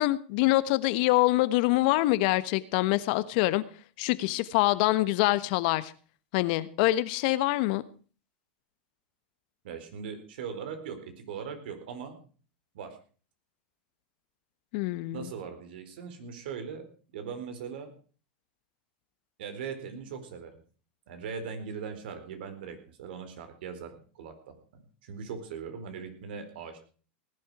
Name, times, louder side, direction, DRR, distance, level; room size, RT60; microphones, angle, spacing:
voice 1, 0.0-3.6 4.0-5.9 6.3-7.8 14.7-15.3, left 18 dB, 60° left, 1.2 m, -25 dB
voice 2, 9.6-12.2 12.7-13.0 15.1-17.9 19.4-20.6 21.1-26.8, right 6 dB, 70° right, 4.3 m, -40 dB
19.0 x 11.0 x 4.9 m
hypercardioid pair, 105°, 5 cm